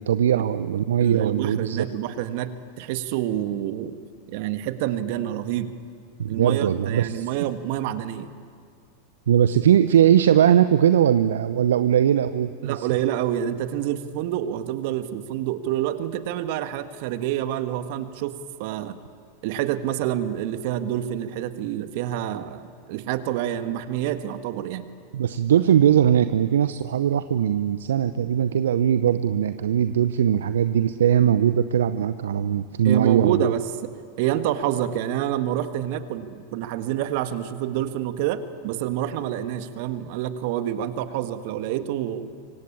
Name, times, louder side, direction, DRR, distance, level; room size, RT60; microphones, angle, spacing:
voice 1, 0.0-1.9 6.2-7.3 9.3-12.9 25.1-33.5, right 9 dB, 70° right, 12 dB, 0.7 m, -20 dB
voice 2, 1.0-3.9 4.3-5.7 6.3-8.3 12.6-19.0 19.4-24.9 32.8-33.9 34.2-42.3, right 11 dB, 55° right, 9 dB, 1.7 m, -27 dB
25.5 x 24.5 x 8.8 m, 2.1 s
figure-of-eight pair, 90°, 0 cm